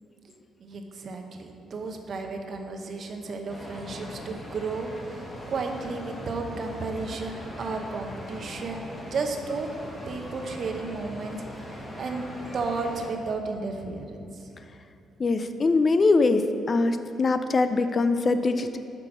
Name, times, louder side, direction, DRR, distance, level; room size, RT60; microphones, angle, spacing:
voice 1, 0.6-8.8 9.1-9.7 10.1-12.3 12.5-14.5, right 4 dB, 55° right, 4 dB, 0.8 m, -33 dB
sound 1, 3.5-13.1, equal, 20° left, 1.4 m, -40 dB
voice 2, 15.2-18.8, left 3 dB, 40° left, 9 dB, 0.4 m, -22 dB
6.1 x 4.6 x 5.9 m, 2.6 s
cardioid pair, 90°, 0 cm